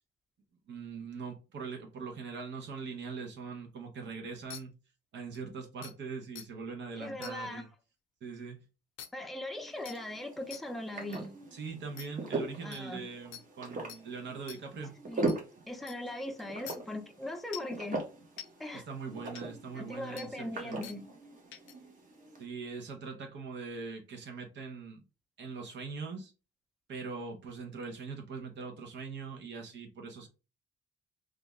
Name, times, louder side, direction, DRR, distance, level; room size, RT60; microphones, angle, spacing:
voice 1, 0.7-4.7 5.1-7.7 8.2-8.6 11.5-14.9 18.7-20.8 22.4-25.0 25.4-26.3 26.9-30.3, right 4 dB, 65° right, 0.9 m, -42 dB
sound 1, 4.5-4.6 5.3-5.4 5.8-5.9 6.4-6.5 7.2-7.3 9.0-9.1 9.9-10.0 10.5-10.6 11.1-11.2 12.0-12.1 12.7-12.8 13.3-13.4 13.9-14.0 14.5-14.6 15.3-15.4 15.9-16.0 16.7-16.8 17.5-17.7 18.4-18.5 19.4-19.5 20.2-20.3 20.8-21.0 21.5-21.7, left 10 dB, 80° left, 0.6 m, -45 dB
voice 2, 7.0-7.6 9.1-11.3 12.6-13.0 15.1-15.3 15.7-18.0 18.6-18.8 19.7-21.1, left 1 dB, ahead, 0.6 m, -39 dB
sound 2, 9.5-22.4, right 3 dB, 40° right, 1.3 m, -41 dB
3.3 x 2.4 x 3.1 m
cardioid pair, 90°, 20 cm